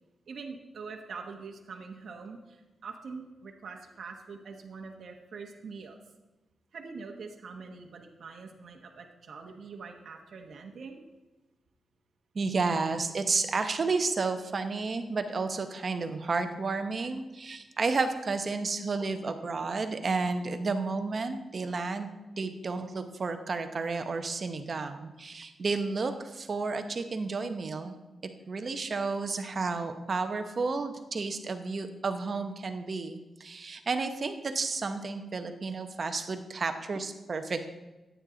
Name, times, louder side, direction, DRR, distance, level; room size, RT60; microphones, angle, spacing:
voice 1, 0.3-6.0 6.7-11.0, right 4 dB, 55° right, 2 dB, 1.1 m, -44 dB
voice 2, 12.3-22.1 22.4-27.9 28.5-37.7, right 4 dB, 35° right, 7 dB, 0.8 m, -31 dB
14.5 x 9.1 x 3.8 m, 1.1 s
wide cardioid pair, 175°, 0 cm